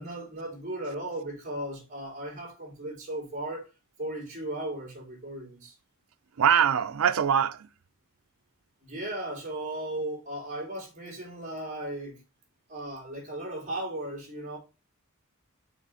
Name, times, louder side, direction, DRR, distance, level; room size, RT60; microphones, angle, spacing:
voice 1, 0.0-3.7 4.0-5.7 8.8-12.2 12.7-14.6, right 1 dB, 35° right, 2.9 m, -36 dB
voice 2, 6.4-7.7, right 8 dB, 80° right, 0.5 m, -23 dB
5.9 x 4.1 x 4.1 m
head